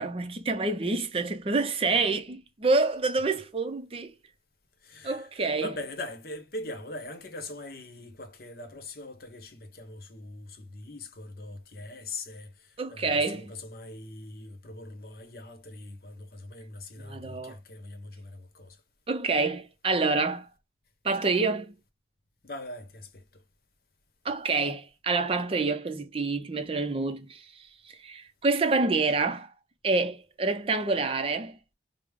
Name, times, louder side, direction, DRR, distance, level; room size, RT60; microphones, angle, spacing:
voice 1, 0.0-4.2 5.0-5.7 12.8-13.5 17.0-17.6 19.1-20.5 21.0-21.8 24.2-27.7 28.0-29.5 29.8-31.6, right 3 dB, 30° right, 0.4 m, -27 dB
voice 2, 4.8-18.8 22.4-23.4, left 2 dB, 55° left, 0.8 m, -42 dB
4.9 x 2.0 x 3.5 m
head